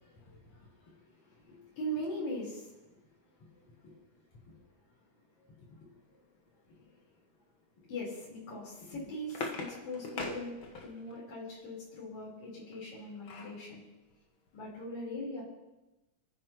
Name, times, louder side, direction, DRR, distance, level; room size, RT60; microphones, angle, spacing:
voice 1, 0.0-2.9 3.4-4.0 4.3-4.5 5.4-6.2 6.8-6.9 7.8-13.8 14.5-15.4, equal, 70° left, -6 dB, 5.4 m, -42 dB
sound 1, 8.7-11.2 12.7-13.6 14.1-14.2 14.5-14.7, left 3 dB, 50° left, 2.0 m, -41 dB
29.5 x 10.0 x 3.0 m, 1.0 s
omnidirectional pair, 3.4 m